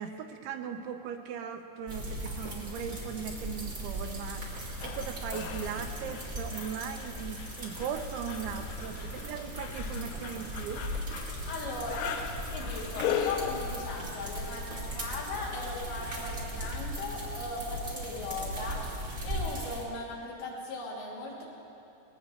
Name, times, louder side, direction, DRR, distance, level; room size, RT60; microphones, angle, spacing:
voice 1, 0.0-10.8, right 7 dB, 85° right, 5 dB, 3.1 m, -39 dB
sound 1, 1.9-19.8, equal, 55° right, 0.7 m, -38 dB
sound 2, 4.8-15.5 17.9-18.0, left 8 dB, 85° left, 2.3 m, -39 dB
voice 2, 11.4-12.1 12.5-21.4, left 2 dB, 70° left, -5 dB, 4.5 m, -38 dB
20.5 x 17.5 x 2.9 m, 2.7 s
omnidirectional pair, 5.4 m